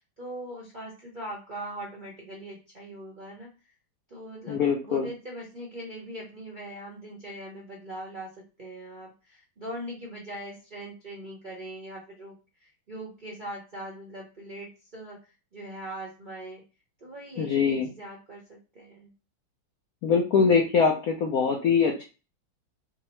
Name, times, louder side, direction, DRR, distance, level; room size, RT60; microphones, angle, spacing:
voice 1, 0.2-3.5 4.1-15.2 15.5-16.6 17.0-19.1, right 1 dB, 45° right, -4 dB, 0.6 m, -41 dB
voice 2, 4.5-5.1 17.4-17.9 20.0-22.0, left 6 dB, 70° left, 1 dB, 0.8 m, -23 dB
3.6 x 2.0 x 4.3 m, 0.31 s
omnidirectional pair, 2.1 m